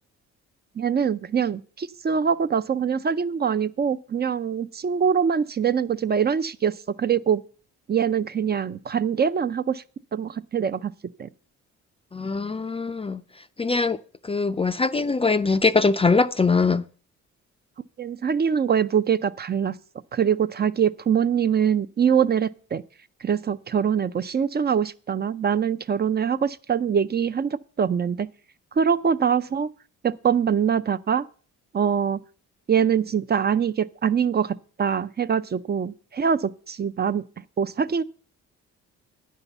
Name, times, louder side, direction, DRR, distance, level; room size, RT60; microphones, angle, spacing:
voice 1, 0.8-7.4 7.9-9.8 10.1-10.9 11.2-11.3 18.0-19.7 20.1-22.8 23.2-28.3 28.8-29.7 30.0-31.3 31.7-32.2 32.7-37.2 37.6-38.0, right 7 dB, 35° right, 0.5 m, -23 dB
voice 2, 12.1-13.2 13.6-14.0 14.2-16.8, left 4 dB, 20° left, 0.4 m, -22 dB
9.8 x 5.6 x 8.0 m
cardioid pair, 90°, 30 cm